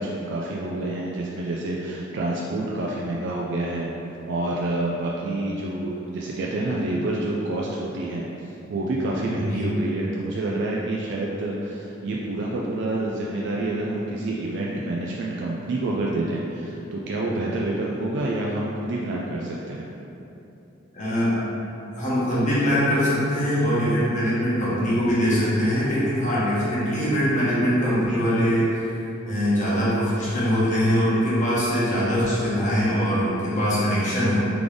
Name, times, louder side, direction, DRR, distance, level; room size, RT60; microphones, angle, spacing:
voice 1, 0.0-3.9 4.3-19.9, right 2 dB, 60° right, -4 dB, 0.4 m, -28 dB
voice 2, 20.9-21.4 22.0-34.4, equal, 40° left, -9 dB, 1.3 m, -22 dB
3.7 x 3.5 x 3.4 m, 2.9 s
head